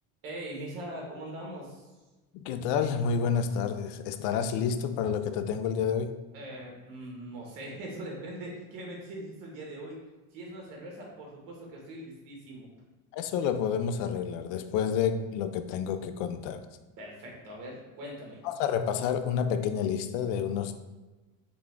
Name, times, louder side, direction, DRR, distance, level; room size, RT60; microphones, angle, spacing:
voice 1, 0.2-1.9 6.3-10.0 10.3-12.7 17.0-18.4, right 1 dB, 55° right, -1 dB, 1.4 m, -41 dB
voice 2, 2.3-6.2 13.1-16.6 18.4-20.7, left 7 dB, 90° left, 9 dB, 0.5 m, -29 dB
3.7 x 3.4 x 3.5 m, 1.2 s
cardioid pair, 145°, 39 cm